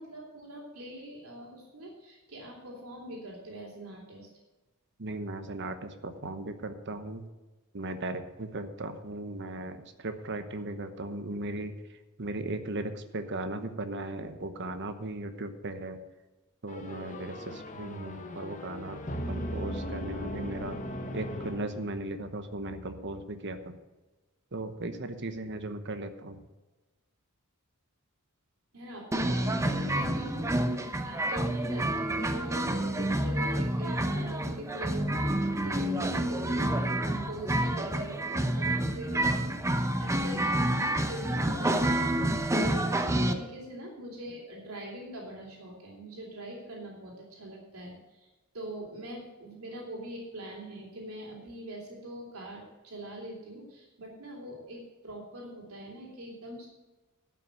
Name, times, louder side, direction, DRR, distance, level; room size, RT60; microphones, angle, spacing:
voice 1, 0.0-4.3 28.7-35.3 35.6-48.3 48.5-56.7, right 1 dB, 80° right, -2 dB, 3.2 m, -43 dB
voice 2, 5.0-7.2 7.7-11.7 12.2-16.0 16.6-19.0 19.3-20.8 21.1-23.7 24.5-26.4 42.6-42.7, right 2 dB, 55° right, 9 dB, 1.0 m, -37 dB
sound 1, 16.7-22.2, equal, 35° left, 1.2 m, -38 dB
sound 2, 29.1-43.3, right 1 dB, 15° right, 0.7 m, -28 dB
12.0 x 5.9 x 7.7 m, 1.1 s
head